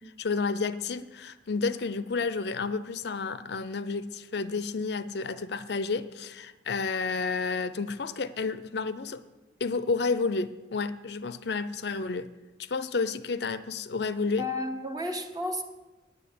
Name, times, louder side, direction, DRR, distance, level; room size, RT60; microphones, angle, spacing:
voice 1, 0.2-9.2 9.6-12.3 12.6-14.5, left 4 dB, 60° left, 0.5 m, -31 dB
voice 2, 14.4-15.6, left 1 dB, 20° right, 0.9 m, -32 dB
9.5 x 7.9 x 8.4 m
head